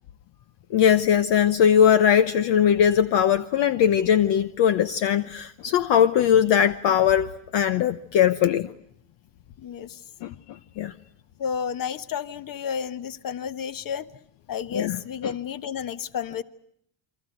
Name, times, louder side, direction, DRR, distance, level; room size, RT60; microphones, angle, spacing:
voice 1, 0.7-8.7 10.2-10.9 14.7-15.3, left 9 dB, 60° left, 1.1 m, -20 dB
voice 2, 9.6-10.0 11.4-14.1 14.5-16.4, left 7 dB, 40° left, 1.5 m, -31 dB
28.5 x 24.0 x 8.0 m
supercardioid pair, 100°, 50 cm